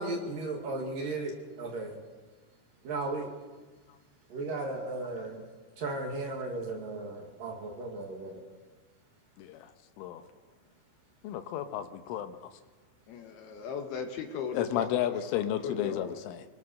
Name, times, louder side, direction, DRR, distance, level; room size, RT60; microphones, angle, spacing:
voice 1, 0.0-2.0 2.8-3.3 4.3-5.4 5.8-8.4, right 2 dB, 50° right, 2 dB, 3.4 m, -35 dB
voice 2, 9.4-9.7 10.0-10.2 11.2-12.4 14.5-16.5, left 11 dB, 85° left, 9 dB, 3.6 m, -33 dB
voice 3, 13.1-15.3 15.6-16.1, left 6 dB, 65° left, 5 dB, 2.8 m, -37 dB
24.5 x 20.5 x 6.6 m, 1.3 s
omnidirectional pair, 5.6 m